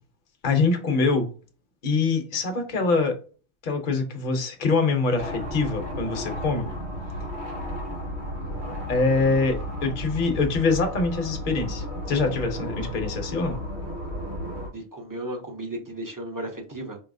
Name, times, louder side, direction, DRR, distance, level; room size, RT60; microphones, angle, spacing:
voice 1, 0.4-1.3 1.8-3.2 3.6-6.7 8.9-13.6, left 4 dB, 50° left, 0.8 m, -24 dB
sound 1, 5.2-14.7, equal, 45° right, 1.5 m, -33 dB
voice 2, 14.7-17.0, right 1 dB, 20° right, 0.6 m, -35 dB
4.6 x 2.7 x 2.6 m
omnidirectional pair, 1.2 m